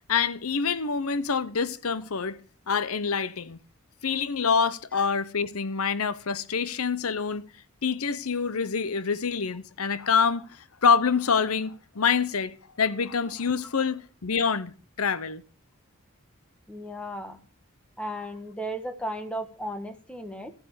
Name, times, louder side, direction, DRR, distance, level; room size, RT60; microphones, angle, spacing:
voice 1, 0.1-2.4 2.7-3.6 4.0-7.4 7.8-14.7 15.0-15.4, left 5 dB, 80° left, 0.8 m, -26 dB
voice 2, 16.7-17.4 18.0-20.5, equal, 5° left, 1.7 m, -35 dB
15.0 x 8.0 x 6.7 m
head